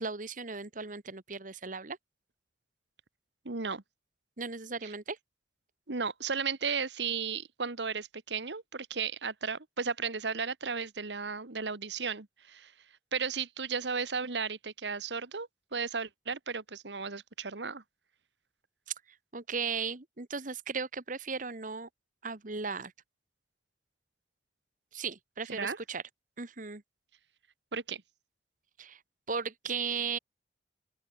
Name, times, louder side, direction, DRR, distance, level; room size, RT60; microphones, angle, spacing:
voice 1, 0.0-2.0 4.4-5.2 19.3-21.9 22.2-22.9 24.9-26.0 26.4-26.8 28.8-29.0 29.3-30.2, right 5 dB, 45° right, 1.5 m, -36 dB
voice 2, 3.4-3.8 4.8-4.9 5.9-12.7 13.1-17.8 25.5-25.8 27.7-28.0, right 5 dB, 75° right, 1.5 m, -35 dB
open air
head